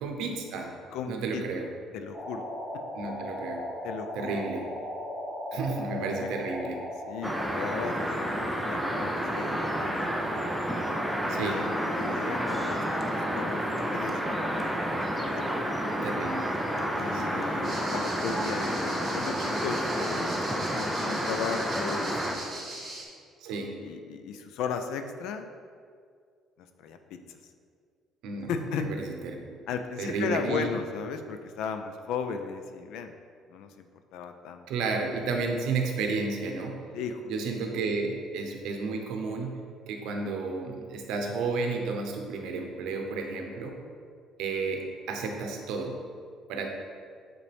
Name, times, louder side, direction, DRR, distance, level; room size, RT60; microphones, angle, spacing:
voice 1, 0.0-0.7 1.1-1.7 2.9-3.6 4.1-4.7 5.5-6.8 11.3-11.6 16.0-16.6 17.1-17.8 23.4-23.7 28.2-28.5 28.8-29.0 29.2-29.6 30.0-30.7 34.7-36.8 37.3-39.5 39.9-43.7 44.4-45.9 46.5-46.7, right 4 dB, 75° right, 3 dB, 0.8 m, -32 dB
voice 2, 0.9-1.4 1.9-2.5 2.7-2.8 3.8-4.5 5.5-5.8 6.1-6.3 7.1-10.1 11.2-13.6 13.9-14.8 15.4-15.8 16.9-20.5 20.8-22.7 23.8-25.5 26.6-27.4 28.5-28.9 29.7-33.1 33.5-34.6 36.9-37.3, left 6 dB, 70° left, 7 dB, 0.5 m, -36 dB
sound 1, 2.1-7.5, left 1 dB, 30° left, 1.2 m, -37 dB
sound 2, 7.2-22.4, equal, ahead, 0.5 m, -30 dB
sound 3, 17.6-23.0, right 2 dB, 20° right, 1.6 m, -40 dB
8.3 x 4.0 x 3.4 m, 2.1 s
cardioid pair, 170°, 0 cm